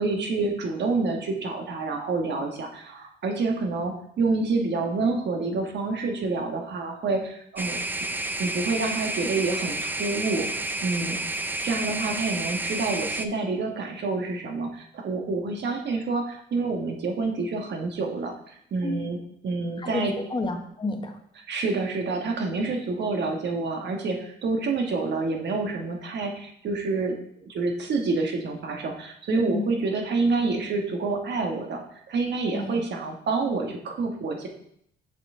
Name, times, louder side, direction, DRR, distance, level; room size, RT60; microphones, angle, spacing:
voice 1, 0.0-7.8 8.4-11.2 11.6-19.2 19.4-20.1 21.5-34.5, right 3 dB, 60° right, 2 dB, 1.3 m, -28 dB
sound 1, 7.6-13.3, right 2 dB, 10° right, 0.4 m, -30 dB
voice 2, 19.8-21.2 29.3-29.7 32.5-32.8, left 2 dB, 25° left, 5 dB, 0.9 m, -31 dB
6.2 x 5.5 x 3.7 m, 0.69 s
cardioid pair, 90°, 20 cm